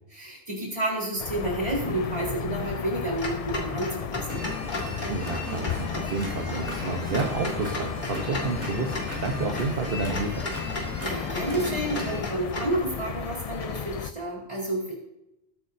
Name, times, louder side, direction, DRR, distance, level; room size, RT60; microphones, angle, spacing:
voice 1, 0.1-4.4 11.0-15.0, right 1 dB, 30° right, -4 dB, 4.1 m, -30 dB
sound 1, 1.2-14.1, left 8 dB, 65° left, 0.3 m, -34 dB
Clock, 3.2-12.8, left 1 dB, 45° left, 2.1 m, -37 dB
sound 2, 4.3-12.2, left 1 dB, 10° right, 2.5 m, -36 dB
voice 2, 4.8-10.4, right 3 dB, 55° right, 3 dB, 1.2 m, -30 dB
20.5 x 8.4 x 2.7 m, 0.87 s
omnidirectional pair, 1.2 m